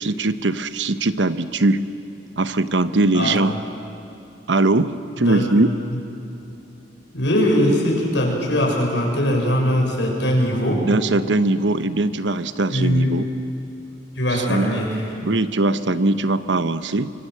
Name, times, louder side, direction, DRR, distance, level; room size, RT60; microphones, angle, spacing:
voice 1, 0.0-1.8 2.4-3.5 4.5-5.7 10.8-13.3 14.3-14.7 15.2-17.1, right 2 dB, 80° right, 12 dB, 1.0 m, -20 dB
voice 2, 7.1-10.9 12.7-13.1 14.2-15.0, equal, 80° left, 0 dB, 6.3 m, -20 dB
25.5 x 25.0 x 8.0 m, 2.9 s
head